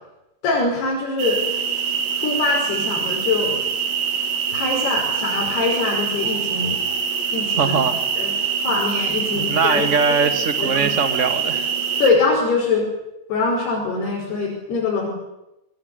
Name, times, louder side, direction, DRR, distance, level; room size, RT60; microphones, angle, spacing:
voice 1, 0.4-1.4 2.2-3.6 4.5-6.8 7.3-7.8 8.2-8.3 8.6-10.2 10.6-10.9 12.0-12.9 13.3-15.1, left 3 dB, 70° left, -3 dB, 7.8 m, -23 dB
sound 1, 1.2-12.1, right 7 dB, 85° right, 4.9 m, -24 dB
voice 2, 7.6-8.0 9.3-11.7, right 5 dB, 35° right, 7 dB, 1.1 m, -21 dB
26.5 x 22.0 x 9.6 m, 0.93 s
omnidirectional pair, 4.7 m